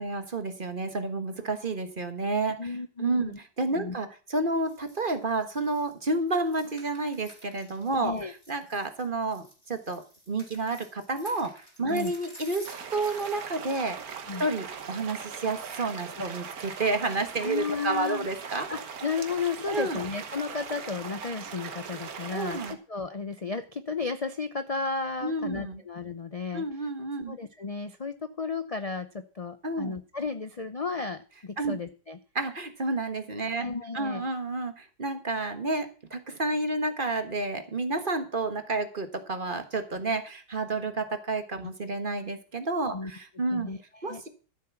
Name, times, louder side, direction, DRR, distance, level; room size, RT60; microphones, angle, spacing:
voice 1, 0.0-8.1 8.5-14.0 14.4-18.7 19.6-20.0 22.3-22.8 25.2-25.8 26.5-27.3 29.6-30.0 31.6-31.8 32.3-33.7 33.9-43.7 44.0-44.3, right 2 dB, 30° right, 8 dB, 1.5 m, -30 dB
voice 2, 2.6-3.4 3.8-3.9 8.0-8.3 11.9-12.1 14.3-14.4 16.2-16.3 17.4-18.3 18.7-22.6 22.9-26.6 27.3-32.2 33.5-34.2 42.9-43.1 43.5-44.3, left 4 dB, 50° left, 10 dB, 0.4 m, -33 dB
sound 1, 4.6-13.4 13.8-13.9, equal, 20° left, 3.7 m, -52 dB
sound 2, 12.6-22.7, right 6 dB, 60° right, 1.7 m, -40 dB
13.0 x 7.7 x 5.9 m, 0.36 s
omnidirectional pair, 1.8 m